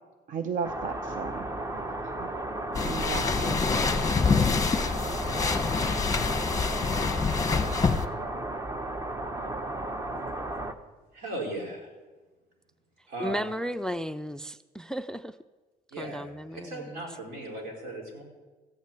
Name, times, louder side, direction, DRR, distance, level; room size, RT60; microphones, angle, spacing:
voice 1, 0.3-1.4 2.2-2.3 2.8-3.9, right 6 dB, 50° right, 0.6 m, -35 dB
sound 1, 0.6-10.7, right 1 dB, 20° right, 0.8 m, -34 dB
sound 2, 2.7-8.1, left 5 dB, 20° left, 0.9 m, -26 dB
voice 2, 11.1-11.9 13.1-13.5 15.9-18.2, right 1 dB, 80° right, 4.2 m, -37 dB
voice 3, 13.2-15.3 16.0-17.0, equal, 5° left, 0.3 m, -34 dB
14.5 x 6.4 x 8.3 m
cardioid pair, 110°, 17 cm